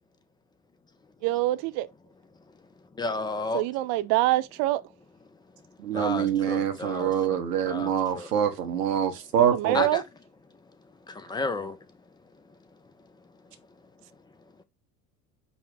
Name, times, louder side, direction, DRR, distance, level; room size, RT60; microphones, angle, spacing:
voice 1, 1.2-1.9 3.5-4.8 9.5-10.0, right 17 dB, 50° right, 0.5 m, -25 dB
voice 2, 3.0-3.6 5.9-7.4 7.7-8.3 9.7-10.0 11.3-11.7, left 3 dB, 10° left, 0.4 m, -31 dB
voice 3, 5.8-9.9, right 9 dB, 85° right, 0.8 m, -25 dB
5.3 x 2.1 x 4.6 m
hypercardioid pair, 75°, 46 cm